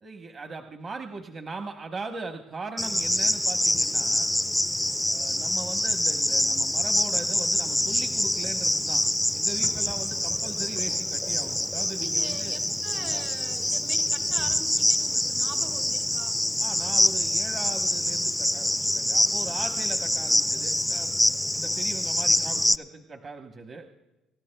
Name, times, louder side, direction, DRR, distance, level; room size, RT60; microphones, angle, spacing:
voice 1, 0.0-4.3 5.1-9.0 9.3-12.6 13.0-13.2 16.6-21.1 21.5-23.9, right 3 dB, 40° right, 4 dB, 1.0 m, -39 dB
Cricket, 2.8-22.8, left 1 dB, 5° left, 0.4 m, -25 dB
voice 2, 12.0-16.4, right 4 dB, 70° right, 3 dB, 2.4 m, -42 dB
27.0 x 12.5 x 2.2 m, 1.0 s
cardioid pair, 95°, 0 cm